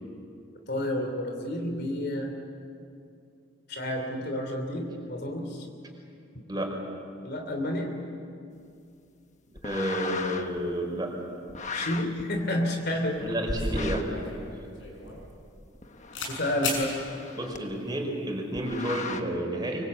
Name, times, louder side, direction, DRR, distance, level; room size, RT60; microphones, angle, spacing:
voice 1, 0.7-2.3 3.7-5.7 7.2-7.9 11.7-13.3 16.3-17.0, left 1 dB, 60° left, 4 dB, 2.9 m, -30 dB
sound 1, 9.5-10.6 11.5-12.2 13.7-14.2 15.7-17.6 18.5-19.2, left 4 dB, 40° left, 1.3 m, -37 dB
voice 2, 9.6-11.1 13.2-14.2 17.4-19.9, right 1 dB, 25° right, 1 dB, 5.0 m, -30 dB
sound 2, 13.5-15.8 16.1-16.3 16.6-16.8, left 2 dB, 75° left, 6.9 m, -34 dB
24.5 x 24.5 x 8.4 m, 2.5 s
head